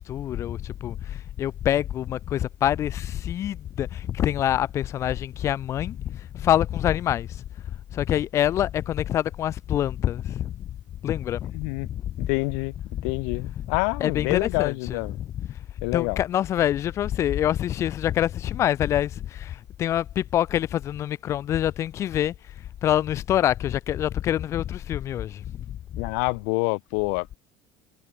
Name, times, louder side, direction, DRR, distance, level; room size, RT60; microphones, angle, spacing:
voice 1, 0.0-7.4 7.9-10.5 11.0-11.6 11.9-12.3 12.9-13.0 13.3-13.7 14.0-15.6 15.9-22.3 22.8-25.8, left 11 dB, 35° left, 5.6 m, -26 dB
voice 2, 11.5-11.9 12.2-12.7 13.0-15.2 15.8-16.2 26.0-27.4, left 37 dB, 85° left, 7.9 m, -27 dB
cardioid pair, 175°, 9 cm